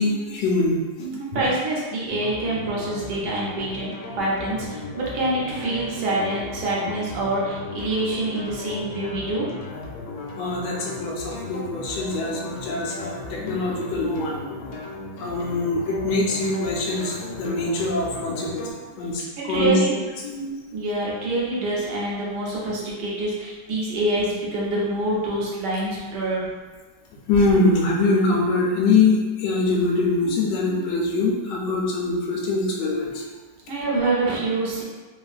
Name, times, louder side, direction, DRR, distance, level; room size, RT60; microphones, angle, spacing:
voice 1, 0.0-1.5 10.4-14.7 15.2-18.7 19.0-19.7 20.2-20.5 27.3-33.2, left 3 dB, 75° left, -3 dB, 1.2 m, -23 dB
voice 2, 1.2-9.5 19.4-20.0 20.7-26.5 33.7-34.8, right 2 dB, 70° right, -5 dB, 1.3 m, -26 dB
sound 1, 2.1-18.7, left 3 dB, 90° left, 1.4 m, -36 dB
3.3 x 2.4 x 2.4 m, 1.4 s
omnidirectional pair, 2.1 m